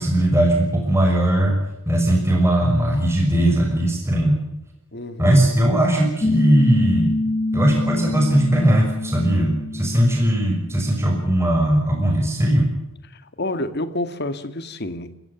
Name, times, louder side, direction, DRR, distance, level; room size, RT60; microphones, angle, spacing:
voice 1, 0.0-4.4 5.2-7.1 7.5-12.7, right 1 dB, 10° right, 6.0 m, -19 dB
voice 2, 4.9-5.4 13.1-15.2, left 1 dB, 50° left, 2.0 m, -29 dB
Piano, 6.2-11.3, left 2 dB, 25° left, 1.4 m, -25 dB
30.0 x 15.5 x 7.1 m
head